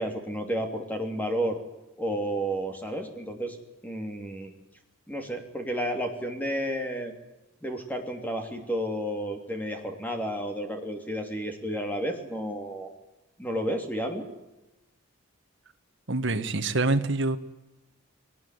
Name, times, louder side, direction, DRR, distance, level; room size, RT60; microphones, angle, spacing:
voice 1, 0.0-1.6 2.0-3.6 3.8-4.5 5.1-7.1 7.6-12.9 13.4-14.3, equal, 10° left, 4 dB, 3.1 m, -31 dB
voice 2, 16.1-17.4, right 2 dB, 55° right, 7 dB, 1.6 m, -25 dB
22.0 x 19.5 x 9.5 m, 0.99 s
head